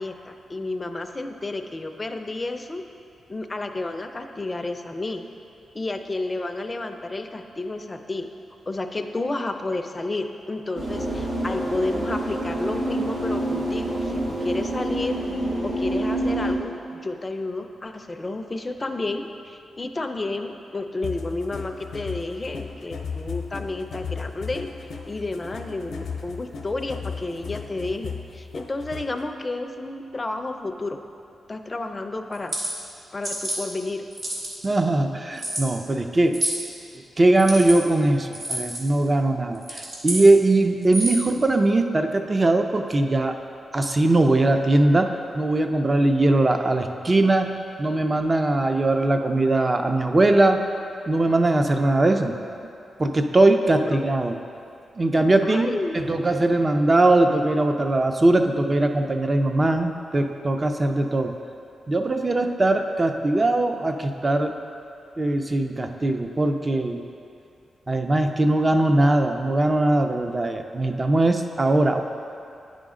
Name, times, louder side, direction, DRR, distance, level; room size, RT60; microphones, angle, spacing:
voice 1, 0.0-2.8 3.3-5.2 5.7-8.3 8.7-14.1 14.4-15.2 15.6-31.0 31.5-32.6 33.1-34.0 53.8-54.1 55.4-56.4, left 2 dB, 25° left, 6 dB, 0.5 m, -31 dB
sound 1, 10.7-16.5, right 1 dB, 80° right, 1.7 m, -27 dB
sound 2, 21.0-29.2, left 5 dB, 80° left, 0.7 m, -36 dB
sound 3, 32.3-32.7 33.2-33.6 34.1-34.6 35.4-35.6 36.3-36.6 37.3-37.8 38.3-38.8 39.5-40.2 40.8-41.3, right 1 dB, 65° right, 1.8 m, -28 dB
voice 2, 34.6-36.4 37.2-43.3 43.7-45.1 45.3-47.5 47.8-50.6 51.1-52.3 53.0-54.4 55.0-61.3 61.9-64.5 65.2-67.0 67.9-72.0, right 2 dB, 30° right, 5 dB, 0.5 m, -20 dB
9.2 x 5.1 x 3.7 m, 2.6 s
cardioid pair, 80°, 0 cm